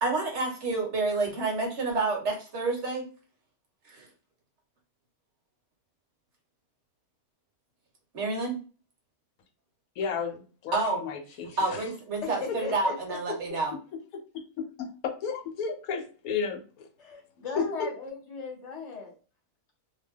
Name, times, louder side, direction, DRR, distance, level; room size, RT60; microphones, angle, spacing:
voice 1, 0.0-3.0 3.9-4.1 8.1-8.6 10.7-11.0 11.6-13.7, right 3 dB, 55° right, 0 dB, 1.0 m, -29 dB
voice 2, 10.0-11.8 14.6-16.9 17.6-17.9, left 6 dB, 80° left, 5 dB, 1.0 m, -33 dB
voice 3, 12.2-12.9 17.0-19.1, left 4 dB, 55° left, 0 dB, 1.0 m, -37 dB
2.5 x 2.1 x 3.3 m, 0.37 s
omnidirectional pair, 1.5 m